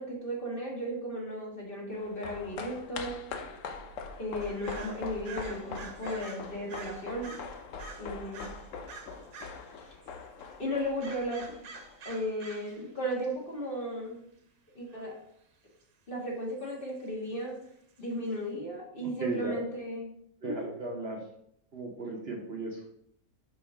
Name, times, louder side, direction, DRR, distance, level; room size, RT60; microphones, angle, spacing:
voice 1, 0.0-3.1 4.2-7.4 7.9-8.5 9.7-10.0 10.6-11.5 12.0-14.3 14.7-15.2 16.1-17.5 18.0-20.1 20.4-20.7, equal, 40° left, -2 dB, 1.7 m, -35 dB
sound 1, 1.9-12.5 12.7-12.8, left 5 dB, 65° left, 1.0 m, -43 dB
sound 2, 4.4-9.7 10.0-10.4 11.0-12.9 13.1-13.3 14.9-15.1 15.8-15.9 16.6-16.8 17.6-17.7 18.0-18.1 18.3-18.4, right 4 dB, 75° right, 1.3 m, -48 dB
voice 2, 19.2-19.6 20.4-21.2 21.7-22.8, right 2 dB, 50° right, 0 dB, 1.0 m, -36 dB
5.8 x 5.3 x 3.5 m, 0.70 s
omnidirectional pair, 1.5 m